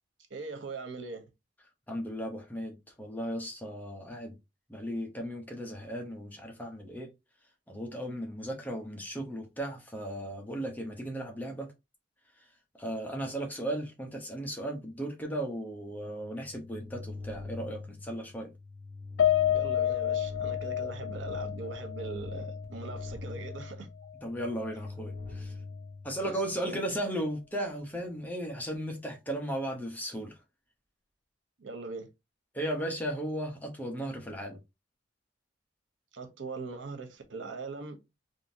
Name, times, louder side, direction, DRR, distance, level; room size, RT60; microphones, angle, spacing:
voice 1, 0.3-1.3 19.5-23.9 26.2-26.3 26.6-26.8 31.6-32.1 36.1-38.0, right 4 dB, 85° right, 0.7 m, -41 dB
voice 2, 1.9-4.4 4.7-7.1 7.7-11.7 12.8-18.5 24.2-25.5 26.0-30.3 32.5-34.6, right 1 dB, 10° left, 0.7 m, -36 dB
sound 1, 16.0-26.6, left 3 dB, 35° right, 1.5 m, -42 dB
Piano, 19.2-23.7 24.0-24.2 24.6-24.7, left 11 dB, 80° left, 0.3 m, -30 dB
3.6 x 2.7 x 2.6 m
head